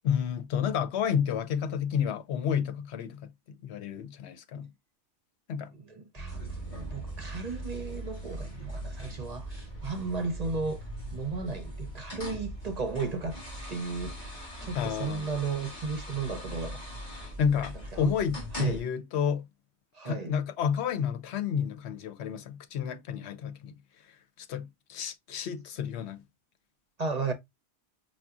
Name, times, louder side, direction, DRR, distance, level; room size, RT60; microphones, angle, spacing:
voice 1, 0.0-4.7 5.5-5.7 14.7-15.3 17.4-19.4 20.0-23.7 24.4-26.2, left 7 dB, 80° left, 0.9 m, -30 dB
voice 2, 5.7-13.4 13.7-16.8 17.7-18.1 18.5-18.8 19.9-20.4 27.0-27.3, right 4 dB, 45° right, 0.6 m, -35 dB
sound 1, 6.1-18.0, right 3 dB, 25° left, 1.0 m, -45 dB
sound 2, 6.3-18.8, equal, 45° left, 2.1 m, -42 dB
5.6 x 2.1 x 2.4 m
omnidirectional pair, 1.1 m